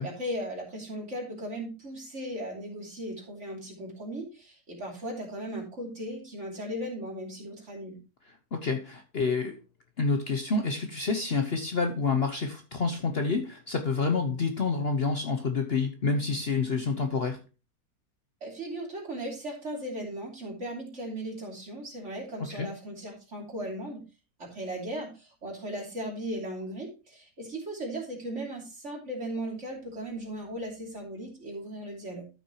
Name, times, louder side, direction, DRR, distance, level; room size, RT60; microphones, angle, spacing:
voice 1, 0.0-8.0 18.4-24.0 24.4-32.2, right 1 dB, 50° right, -1 dB, 3.2 m, -37 dB
voice 2, 8.3-9.6 10.0-17.4 22.5-22.7, left 4 dB, 45° left, 6 dB, 0.9 m, -28 dB
13.0 x 5.9 x 2.9 m, 0.29 s
omnidirectional pair, 1.6 m